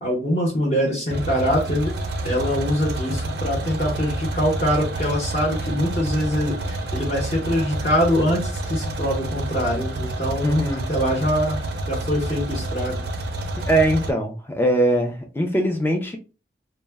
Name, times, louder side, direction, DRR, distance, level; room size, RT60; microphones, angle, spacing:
voice 1, 0.0-1.9 2.2-13.0, equal, 35° left, -3 dB, 0.8 m, -24 dB
sound 1, 1.1-14.1, right 1 dB, 65° right, 0.5 m, -28 dB
voice 2, 10.4-10.9 13.7-16.2, right 1 dB, 10° left, 3 dB, 0.4 m, -21 dB
2.1 x 2.1 x 3.3 m, 0.33 s
head